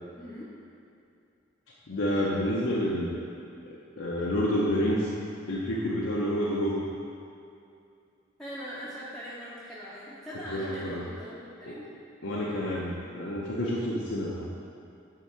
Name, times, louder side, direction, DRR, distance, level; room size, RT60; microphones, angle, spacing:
voice 1, 0.2-0.5 8.4-11.9, equal, 5° left, -10 dB, 0.7 m, -41 dB
voice 2, 1.9-3.2 3.7-5.1 5.5-6.8 10.5-11.1 11.7-11.8 12.2-14.5, equal, 75° left, -5 dB, 0.7 m, -29 dB
8.8 x 3.7 x 4.4 m, 2.5 s
head